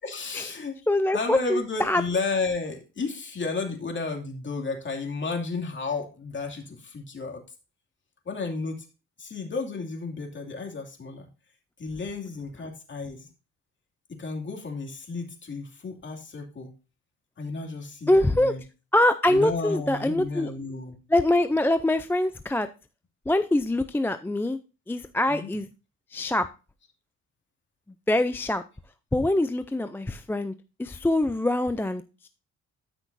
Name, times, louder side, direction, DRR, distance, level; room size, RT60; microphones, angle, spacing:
voice 1, 0.0-0.8 1.1-7.4 8.2-8.9 9.2-11.3 11.8-13.3 14.1-16.7 17.4-18.6 19.3-20.9 25.3-25.5, left 4 dB, 40° left, 2 dB, 2.5 m, -32 dB
voice 2, 0.9-2.0 18.1-18.6 18.9-20.5 21.1-22.7 23.3-24.6 24.9-25.7 26.1-26.5 28.1-28.6 29.1-30.5 30.8-32.3, left 1 dB, 5° left, 10 dB, 0.4 m, -24 dB
13.0 x 6.0 x 2.6 m, 0.32 s
cardioid pair, 90°, 30 cm